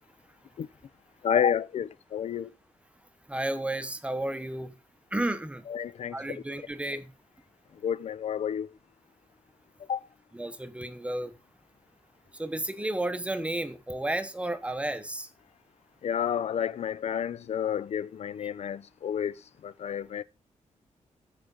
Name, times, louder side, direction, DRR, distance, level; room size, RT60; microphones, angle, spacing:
voice 1, 1.2-2.5 5.7-6.2 7.8-8.7 9.9-10.0 16.0-19.3 19.6-20.2, left 8 dB, 60° left, 0.4 m, -30 dB
voice 2, 3.3-4.7 5.1-5.6 6.1-7.1 10.3-11.3 12.3-15.3, right 1 dB, 10° right, 0.8 m, -32 dB
14.0 x 4.9 x 3.9 m
wide cardioid pair, 165°, 12 cm